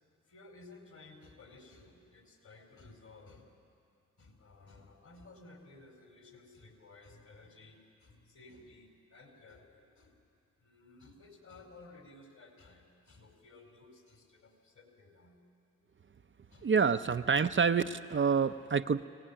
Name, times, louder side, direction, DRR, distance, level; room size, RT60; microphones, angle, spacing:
voice 1, 0.3-3.5 4.2-10.2 10.6-15.4 16.5-16.7 17.0-17.2, left 3 dB, 60° left, 2 dB, 5.0 m, -56 dB
voice 2, 16.6-19.1, right 6 dB, 35° right, 9 dB, 0.7 m, -27 dB
24.0 x 18.0 x 8.9 m, 2.5 s
supercardioid pair, 40°, 33 cm